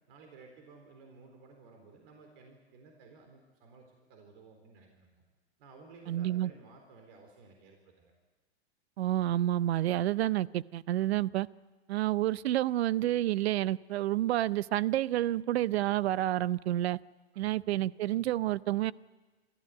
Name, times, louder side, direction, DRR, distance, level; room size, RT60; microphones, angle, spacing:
voice 1, 0.1-5.3 5.6-8.1 11.0-11.2 17.3-17.5, right 4 dB, 55° right, 3 dB, 3.9 m, -55 dB
voice 2, 6.1-6.5 9.0-11.5 11.9-17.0 17.4-18.9, right 14 dB, 70° right, 21 dB, 0.6 m, -29 dB
25.0 x 14.0 x 9.6 m, 1.3 s
hypercardioid pair, 120°, 33 cm